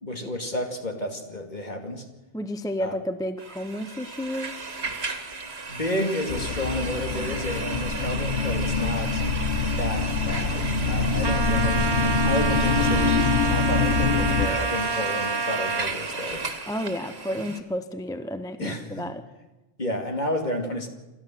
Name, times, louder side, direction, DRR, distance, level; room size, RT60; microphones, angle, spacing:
voice 1, 0.0-2.1 2.8-3.0 5.7-9.3 9.7-16.4 17.3-17.4 18.6-19.1 19.8-20.9, left 1 dB, 45° left, 4 dB, 2.6 m, -31 dB
voice 2, 2.3-4.5 16.7-19.2, equal, 5° left, 10 dB, 0.7 m, -31 dB
sound 1, 3.4-17.6, right 3 dB, 85° right, 2.0 m, -34 dB
sound 2, 6.3-14.5, left 4 dB, 75° left, 1.4 m, -25 dB
Trumpet, 11.2-15.9, right 4 dB, 30° right, 0.7 m, -28 dB
28.0 x 12.5 x 7.6 m, 1.1 s
omnidirectional pair, 1.0 m